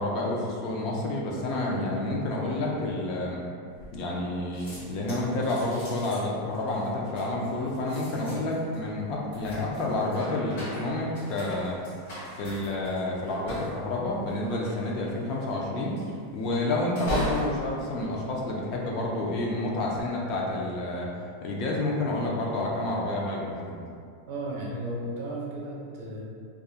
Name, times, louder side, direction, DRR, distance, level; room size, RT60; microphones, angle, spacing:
voice 1, 0.0-3.4 3.9-11.8 12.4-16.0 16.3-21.1 21.4-23.8, left 2 dB, 40° left, -2 dB, 0.4 m, -29 dB
sound 1, 3.8-4.3 4.5-19.1 19.7-20.1, equal, 70° left, 1.1 m, -39 dB
voice 2, 24.3-26.2, right 1 dB, 50° right, -4 dB, 0.6 m, -34 dB
2.3 x 2.0 x 2.7 m, 2.2 s
supercardioid pair, 165°, 0 cm